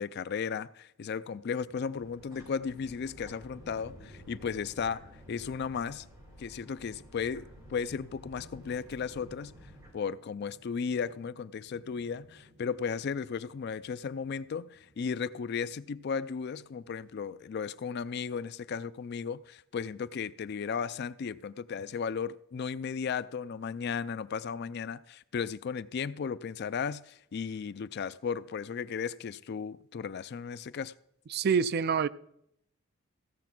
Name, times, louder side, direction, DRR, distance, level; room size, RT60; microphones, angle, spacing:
voice 1, 0.0-5.0 5.3-6.0 6.4-9.5 9.9-30.9, left 6 dB, 55° left, 0.4 m, -35 dB
sound 1, 1.1-17.7, equal, 75° right, 3.1 m, -56 dB
sound 2, 1.9-9.9, equal, 20° right, 5.5 m, -55 dB
voice 2, 31.3-32.1, right 6 dB, 50° right, 0.4 m, -26 dB
16.0 x 6.9 x 5.9 m
head